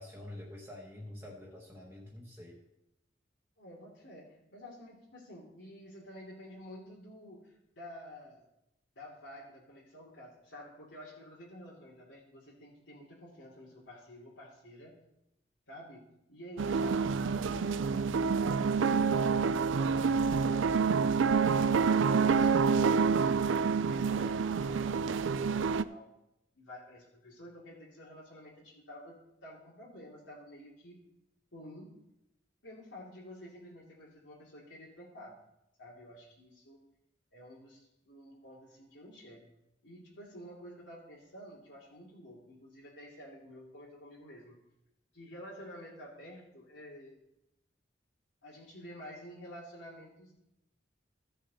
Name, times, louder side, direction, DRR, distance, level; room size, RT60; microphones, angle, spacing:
voice 1, 0.0-2.6, left 1 dB, 10° right, -3 dB, 1.3 m, -47 dB
voice 2, 3.6-8.5 9.0-15.0 15.7-20.6 21.3-25.5 25.7-26.1 26.5-31.0 31.5-32.0 32.6-35.3 35.8-36.8 37.3-39.5 39.8-44.6 45.1-47.2 48.4-50.4, equal, 80° left, -7 dB, 2.8 m, -50 dB
sound 1, 16.6-25.8, right 5 dB, 90° right, 0.4 m, -27 dB
15.0 x 6.5 x 4.1 m, 0.84 s
head